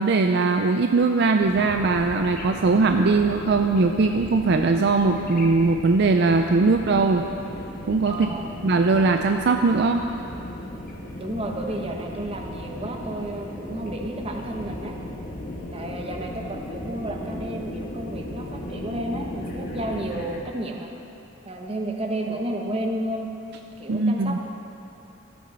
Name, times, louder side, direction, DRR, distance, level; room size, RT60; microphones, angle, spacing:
voice 1, 0.0-7.3 7.9-8.3 8.6-10.0 23.9-24.4, right 3 dB, 60° right, 5 dB, 0.4 m, -20 dB
sound 1, 1.4-20.4, left 1 dB, 45° left, 1.3 m, -36 dB
voice 2, 8.1-8.5 11.2-15.0 15.7-20.9 21.4-23.3 23.8-24.4, right 1 dB, 30° right, 2 dB, 1.1 m, -32 dB
13.5 x 8.9 x 5.7 m, 2.9 s
head